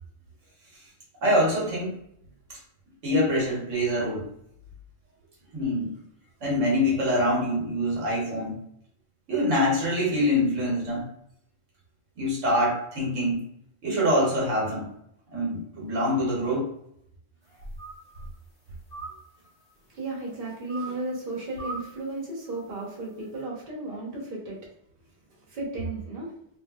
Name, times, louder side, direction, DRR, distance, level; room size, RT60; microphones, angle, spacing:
voice 1, 1.2-2.0 2.5-2.6 3.0-4.3 5.5-5.9 6.4-8.6 9.3-11.0 12.2-13.4 13.8-14.9 15.3-16.7, equal, 75° right, -3 dB, 1.4 m, -25 dB
sound 1, 17.5-18.3 18.7-19.7 20.7-21.2 21.6-22.0 22.4-22.7, right 3 dB, 40° left, 0.8 m, -41 dB
voice 2, 19.9-24.6 25.5-26.3, right 2 dB, 45° right, -4 dB, 1.0 m, -34 dB
3.1 x 2.6 x 2.3 m, 0.72 s
omnidirectional pair, 1.3 m